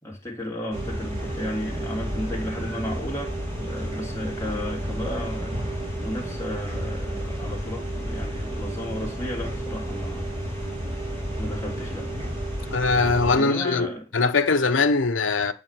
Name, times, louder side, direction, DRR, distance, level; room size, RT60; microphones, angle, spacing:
voice 1, 0.0-5.5 6.0-10.4 11.4-12.1 13.3-14.1, left 1 dB, 15° left, 3.0 m, -34 dB
sound 1, 0.7-13.4, right 1 dB, 30° right, 3.1 m, -31 dB
voice 2, 12.7-15.5, left 4 dB, 75° left, 0.8 m, -22 dB
8.0 x 5.0 x 7.4 m
head